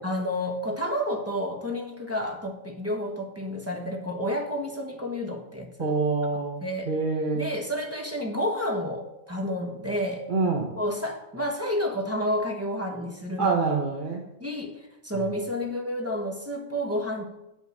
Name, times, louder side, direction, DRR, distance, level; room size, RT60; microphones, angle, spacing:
voice 1, 0.0-5.9 6.6-6.9 7.3-10.3 10.8-13.5 14.4-17.2, equal, 10° right, 2 dB, 1.1 m, -30 dB
voice 2, 5.8-7.5 10.3-10.7 13.4-14.2 15.1-15.2, right 4 dB, 35° right, 0 dB, 1.0 m, -26 dB
9.0 x 5.8 x 7.6 m, 0.89 s
omnidirectional pair, 1.6 m